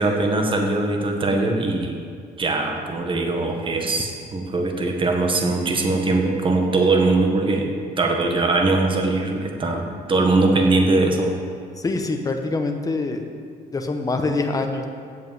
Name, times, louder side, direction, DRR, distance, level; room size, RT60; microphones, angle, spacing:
voice 1, 0.0-2.0 2.4-7.7 8.0-11.3, right 2 dB, 30° right, 2 dB, 1.5 m, -21 dB
voice 2, 11.8-13.2 13.7-14.9, left 3 dB, 20° left, 4 dB, 1.1 m, -24 dB
8.2 x 7.7 x 7.7 m, 2.2 s
cardioid pair, 110°, 17 cm